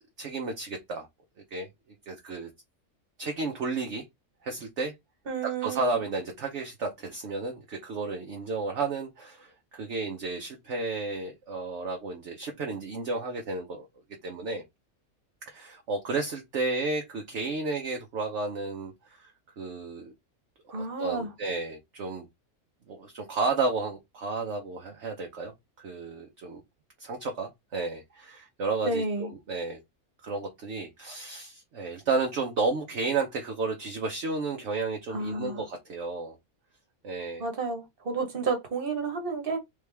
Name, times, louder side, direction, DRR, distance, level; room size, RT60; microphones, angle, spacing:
voice 1, 0.2-1.1 1.5-1.7 2.1-2.5 3.2-4.0 4.4-4.9 5.4-13.9 14.2-14.6 15.5-20.1 20.7-22.3 22.9-26.6 27.0-29.8 30.2-36.4 37.0-37.4, right 3 dB, 55° right, 1.1 m, -32 dB
voice 2, 5.3-5.9 20.7-21.3 28.8-29.3 35.1-35.7 37.4-39.6, right 3 dB, 40° right, 1.4 m, -31 dB
3.7 x 3.4 x 3.3 m
omnidirectional pair, 1.5 m